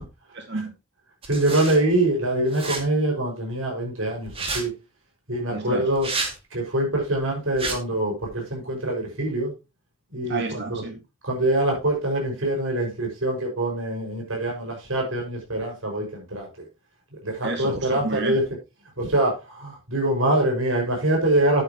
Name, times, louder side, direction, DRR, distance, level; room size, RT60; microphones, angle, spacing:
voice 1, 0.3-0.7 5.5-5.9 10.3-11.0 17.4-18.4, right 2 dB, 60° right, 4 dB, 2.3 m, -30 dB
sound 1, 1.2-1.8 2.5-2.8 4.3-4.6 5.9-6.3 7.5-7.8, right 3 dB, 30° right, 2.3 m, -29 dB
voice 2, 1.3-4.7 5.3-6.1 6.5-9.5 10.1-10.4 11.2-16.7 17.1-18.4 19.0-21.6, right 1 dB, 80° right, 0 dB, 6.3 m, -24 dB
10.5 x 9.8 x 3.1 m, 0.25 s
head